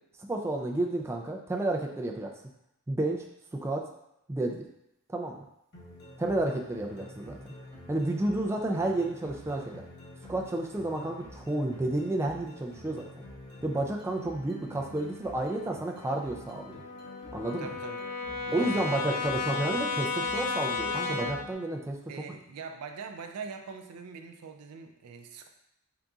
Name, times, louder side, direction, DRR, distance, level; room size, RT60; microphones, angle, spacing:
voice 1, 0.3-2.3 2.9-3.3 3.5-3.9 4.3-4.7 5.1-5.4 6.2-7.5 7.9-9.8 10.3-13.0 13.6-16.8 17.3-17.7 18.5-22.0, right 2 dB, 10° right, 0 dB, 0.3 m, -31 dB
sound 1, 5.7-21.5, left 1 dB, 50° left, 1.1 m, -48 dB
Brass instrument, 16.0-21.6, left 4 dB, 85° left, 0.4 m, -33 dB
voice 2, 17.6-18.0 18.5-19.2 22.1-25.5, right 5 dB, 85° right, 5 dB, 0.4 m, -42 dB
3.8 x 3.8 x 2.3 m, 0.82 s
head